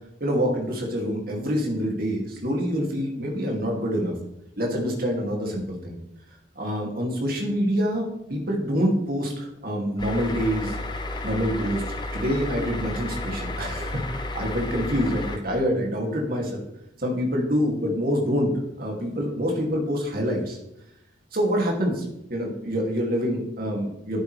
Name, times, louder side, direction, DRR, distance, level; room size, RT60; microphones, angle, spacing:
voice 1, 0.2-4.1 4.6-6.0 6.6-10.8 11.2-11.8 12.1-16.6 17.0-20.6 21.3-24.2, equal, 50° right, 0 dB, 2.4 m, -26 dB
sound 1, 10.0-15.4, left 2 dB, 25° left, 0.8 m, -32 dB
11.0 x 8.1 x 3.3 m, 0.83 s
head